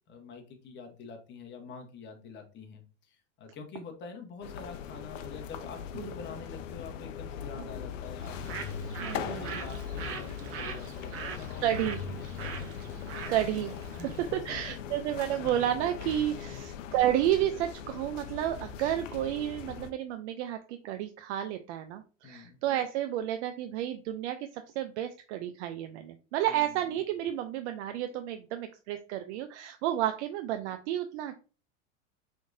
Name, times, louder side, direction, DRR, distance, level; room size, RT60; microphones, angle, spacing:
voice 1, 0.1-8.6 9.2-11.7 12.2-12.7 14.0-15.0 16.4-16.6 22.2-22.6 26.4-26.8, left 4 dB, 30° left, 3 dB, 1.1 m, -46 dB
sound 1, 4.4-19.9, left 8 dB, 85° left, 0.6 m, -40 dB
Bird, 8.2-14.3, right 6 dB, 40° right, 0.8 m, -43 dB
voice 2, 8.9-9.6 11.6-12.0 13.3-14.0 14.3-31.4, right 12 dB, 65° right, 8 dB, 0.5 m, -31 dB
4.6 x 3.6 x 2.6 m, 0.36 s
supercardioid pair, 115°, 37 cm